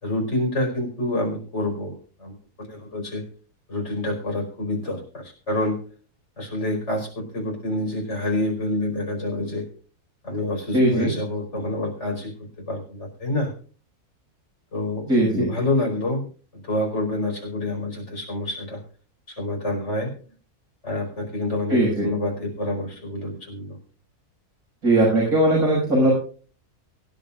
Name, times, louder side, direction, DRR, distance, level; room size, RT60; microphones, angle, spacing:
voice 1, 0.0-3.2 3.7-5.8 6.4-9.7 10.2-13.5 14.7-15.1 15.3-16.3 16.5-18.8 19.4-20.1 20.8-23.8, left 1 dB, 45° left, 1 dB, 5.3 m, -27 dB
voice 2, 10.7-11.1 15.1-15.5 21.7-22.1 24.8-26.1, right 1 dB, 75° right, -5 dB, 6.8 m, -19 dB
24.0 x 11.0 x 2.5 m, 0.40 s
omnidirectional pair, 1.6 m